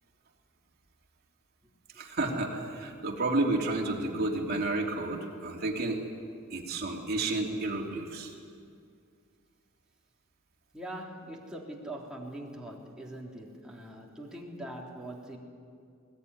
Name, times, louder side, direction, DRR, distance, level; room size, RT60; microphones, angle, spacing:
voice 1, 1.9-6.0 6.5-8.3, right 2 dB, 50° right, 0 dB, 3.0 m, -31 dB
voice 2, 6.5-6.8 10.7-15.4, right 1 dB, 5° right, -3 dB, 3.3 m, -42 dB
21.0 x 20.0 x 9.8 m, 2.3 s
head